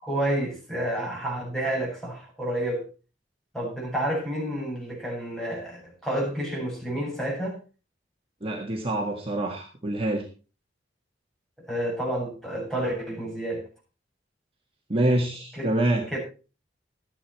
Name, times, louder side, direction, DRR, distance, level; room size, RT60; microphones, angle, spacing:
voice 1, 0.0-2.8 3.5-7.6 11.7-13.6 15.5-15.7 16.1-16.2, right 1 dB, 5° left, -3 dB, 7.5 m, -29 dB
voice 2, 8.4-10.3 14.9-16.1, right 1 dB, 30° right, 1 dB, 1.7 m, -26 dB
13.0 x 10.0 x 4.5 m, 0.34 s
head